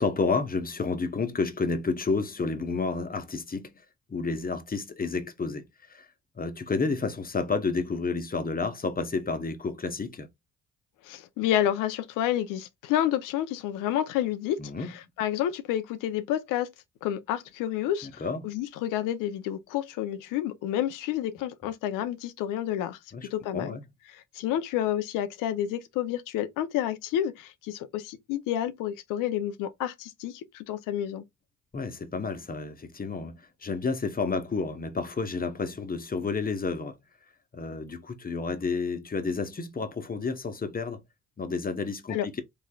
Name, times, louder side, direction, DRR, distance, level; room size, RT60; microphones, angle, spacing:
voice 1, 0.0-3.7 4.1-6.1 6.4-10.3 14.6-14.9 18.0-18.5 23.1-23.8 31.7-37.0 37.5-41.0 41.4-42.4, left 4 dB, 30° left, 1.0 m, -30 dB
voice 2, 11.0-14.6 14.9-16.7 17.0-23.8 24.1-31.2 42.1-42.3, left 11 dB, 80° left, 0.6 m, -30 dB
3.5 x 3.4 x 2.3 m
supercardioid pair, 55°, 32 cm